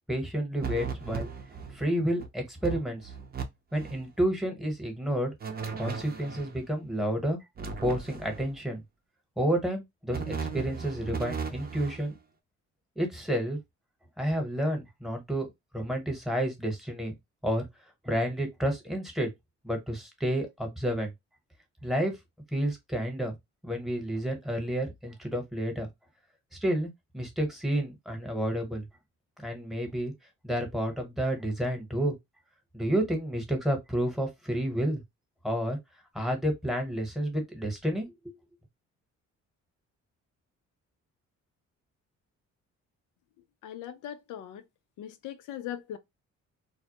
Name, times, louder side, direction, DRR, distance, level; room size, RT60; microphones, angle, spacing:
voice 1, 0.1-1.3 1.7-3.1 3.7-5.3 5.8-7.4 7.8-8.8 9.4-12.1 13.0-13.6 14.2-15.5 15.7-17.1 17.4-17.6 18.0-19.3 19.6-21.1 21.8-22.1 22.5-23.4 23.6-25.9 26.6-28.9 29.4-30.1 30.4-32.1 32.7-35.0 35.4-35.8 36.1-38.3, right 1 dB, ahead, 0.9 m, -30 dB
sound 1, 0.6-1.8 2.2-2.3 2.6-3.4 3.7-4.0 5.4-6.5 7.6-8.6 10.1-12.1, right 5 dB, 30° right, 0.5 m, -36 dB
voice 2, 43.6-44.6 45.0-46.0, left 11 dB, 80° left, 0.5 m, -39 dB
2.2 x 2.0 x 2.8 m
cardioid pair, 90°, 30 cm